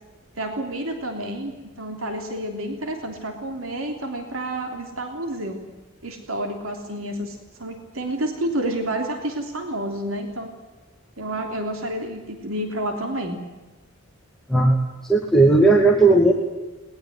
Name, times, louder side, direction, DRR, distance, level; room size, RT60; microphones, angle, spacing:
voice 1, 0.4-5.6 6.0-10.5 11.2-13.4, right 1 dB, 85° right, 4 dB, 3.3 m, -29 dB
voice 2, 15.0-16.3, right 2 dB, ahead, -1 dB, 2.3 m, -15 dB
22.0 x 20.0 x 9.4 m, 1.2 s
head